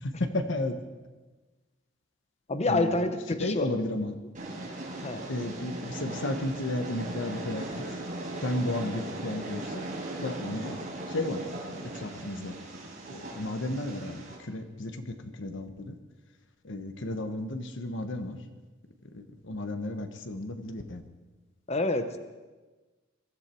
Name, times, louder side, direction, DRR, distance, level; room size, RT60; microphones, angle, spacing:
voice 1, 0.0-0.8 2.7-2.9 3.4-4.2 5.3-7.8 8.4-9.9 10.2-10.8 11.1-11.4 11.8-12.5 13.1-16.0 16.6-18.4 19.1-21.0, left 1 dB, 65° left, 8 dB, 1.3 m, -33 dB
voice 2, 2.5-3.7 5.0-5.2 21.7-22.2, left 2 dB, 35° left, 9 dB, 0.8 m, -27 dB
Train, 4.3-14.3, right 1 dB, 40° right, 4.2 m, -38 dB
22.0 x 13.5 x 4.5 m, 1.3 s
head